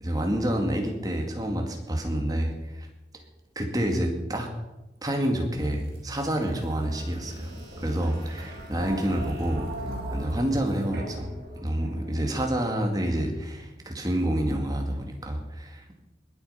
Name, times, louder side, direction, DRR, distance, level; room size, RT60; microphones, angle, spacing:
voice 1, 0.0-2.9 3.6-4.5 5.0-7.5 7.8-9.7 10.1-11.3 11.6-16.0, right 1 dB, 20° right, 3 dB, 2.1 m, -28 dB
sound 1, 5.6-12.3, right 1 dB, 60° right, 5.6 m, -39 dB
20.5 x 8.4 x 5.7 m, 1.0 s
head